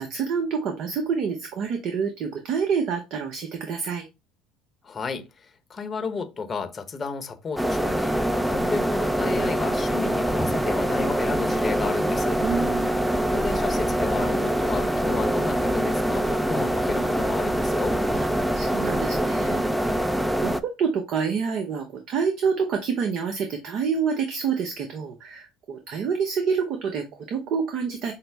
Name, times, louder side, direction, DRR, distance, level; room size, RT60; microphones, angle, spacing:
voice 1, 0.0-4.1 12.4-13.1 18.1-18.3 18.5-28.1, right 6 dB, 55° right, 0.7 m, -28 dB
voice 2, 4.8-12.4 13.3-18.0, left 4 dB, 30° left, 0.8 m, -32 dB
sound 1, 7.6-20.6, right 1 dB, ahead, 0.4 m, -24 dB
5.6 x 2.0 x 3.3 m
supercardioid pair, 90°, 0 cm